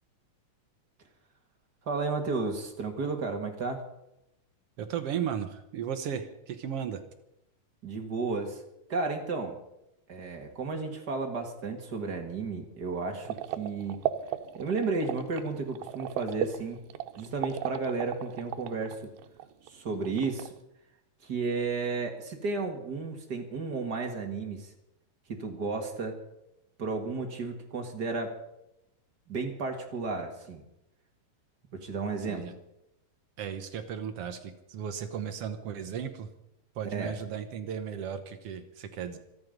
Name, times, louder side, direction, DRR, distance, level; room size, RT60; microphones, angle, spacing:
voice 1, 1.9-3.8 7.8-8.6 8.9-9.6 10.1-14.0 14.6-16.8 17.2-19.1 19.6-20.5 21.2-24.7 25.3-26.2 26.8-28.3 29.3-30.6 31.7-32.5 36.9-37.1, right 4 dB, 35° right, 4 dB, 1.9 m, -33 dB
voice 2, 4.8-7.0 32.3-32.5 33.4-36.3 36.7-39.2, right 8 dB, 75° right, 8 dB, 1.4 m, -35 dB
sound 1, 13.2-19.7 19.9-20.6, right 12 dB, 90° right, 2.6 m, -36 dB
25.0 x 9.5 x 5.3 m, 0.85 s
omnidirectional pair, 4.1 m